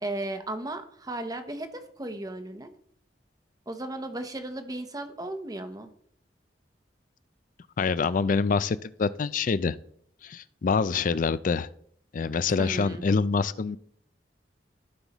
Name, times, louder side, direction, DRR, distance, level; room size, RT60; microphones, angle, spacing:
voice 1, 0.0-2.7 3.7-5.9 12.6-13.0, right 1 dB, 20° right, 8 dB, 0.9 m, -35 dB
voice 2, 7.8-9.8 10.2-11.7 12.1-13.8, left 5 dB, 50° left, 16 dB, 0.4 m, -26 dB
15.0 x 5.6 x 3.0 m, 0.63 s
head